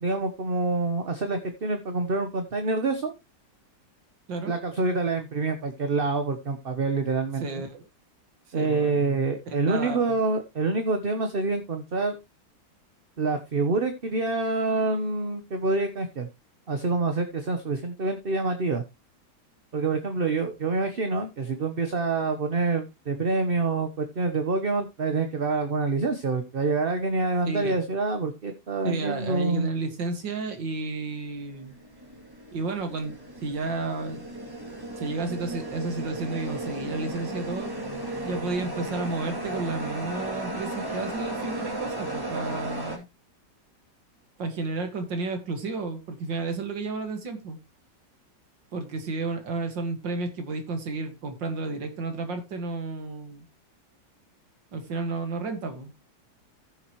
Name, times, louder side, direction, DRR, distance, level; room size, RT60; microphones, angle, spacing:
voice 1, 0.0-3.1 4.5-7.6 8.5-12.2 13.2-16.3 16.7-18.8 19.7-29.7, right 3 dB, 35° right, 1.1 m, -26 dB
voice 2, 7.4-7.8 8.5-10.2 27.4-27.8 28.8-31.7 32.5-33.2 33.4-34.2 35.0-37.7 38.2-43.1 44.4-47.6 48.7-53.5 54.7-55.9, right 3 dB, 85° right, 2.6 m, -32 dB
sound 1, 31.4-43.0, right 1 dB, 10° right, 2.8 m, -35 dB
14.5 x 7.3 x 3.1 m
omnidirectional pair, 1.9 m